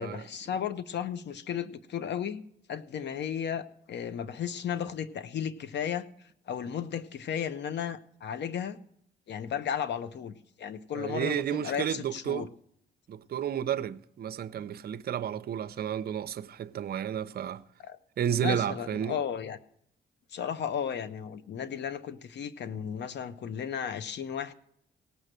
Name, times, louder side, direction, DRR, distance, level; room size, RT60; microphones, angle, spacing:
voice 1, 0.0-2.4 2.7-6.1 6.5-8.8 9.3-12.5 17.8-18.0 18.4-19.6 20.3-24.5, left 8 dB, 60° left, 0.9 m, -34 dB
voice 2, 10.9-12.5 13.1-17.6 18.2-19.2, right 9 dB, 50° right, 0.6 m, -32 dB
17.5 x 6.2 x 6.6 m
cardioid pair, 90°, 20 cm